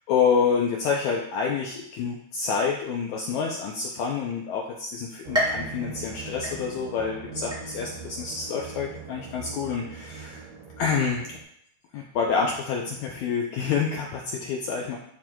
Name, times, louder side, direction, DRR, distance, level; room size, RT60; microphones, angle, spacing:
voice 1, 0.1-10.5 10.8-11.4 11.9-15.0, left 6 dB, 80° left, -1 dB, 1.6 m, -27 dB
sound 1, 5.2-11.4, right 4 dB, 70° right, 1.7 m, -41 dB
sound 2, 5.3-7.0 7.5-8.1 8.6-8.7 9.7-9.8, equal, 5° right, 0.9 m, -31 dB
11.0 x 4.4 x 2.3 m, 0.71 s
omnidirectional pair, 4.1 m